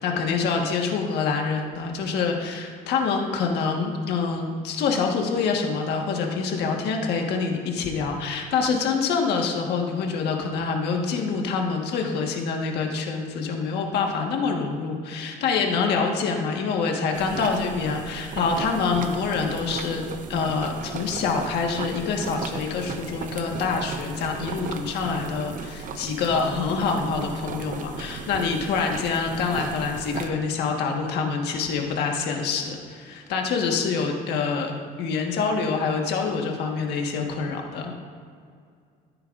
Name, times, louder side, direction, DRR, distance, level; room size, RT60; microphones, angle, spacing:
voice 1, 0.0-34.7 35.0-37.9, left 5 dB, 80° left, 1 dB, 1.5 m, -26 dB
sound 1, 17.1-30.3, right 5 dB, 50° right, 0.7 m, -36 dB
14.5 x 8.8 x 2.6 m, 2.2 s
cardioid pair, 110°, 17 cm